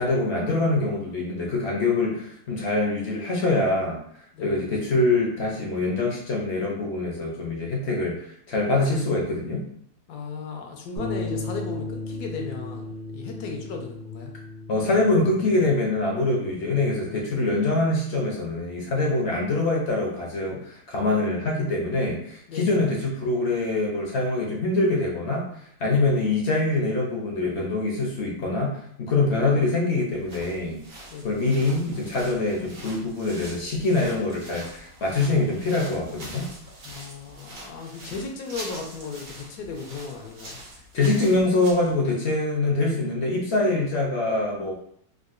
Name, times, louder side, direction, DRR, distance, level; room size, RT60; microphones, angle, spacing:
voice 1, 0.0-4.0 4.4-8.1 8.5-9.7 14.7-25.5 25.8-30.8 31.2-36.5 40.9-44.7, left 2 dB, 60° left, -2 dB, 0.7 m, -24 dB
voice 2, 4.3-4.6 10.1-14.3 22.5-22.8 31.1-31.5 36.8-40.6, left 4 dB, 75° left, 2 dB, 1.1 m, -36 dB
sound 1, 11.0-17.2, left 2 dB, 45° right, 0.8 m, -36 dB
sound 2, 30.1-41.9, right 1 dB, 60° right, 1.1 m, -44 dB
3.7 x 2.3 x 2.4 m, 0.68 s
omnidirectional pair, 1.7 m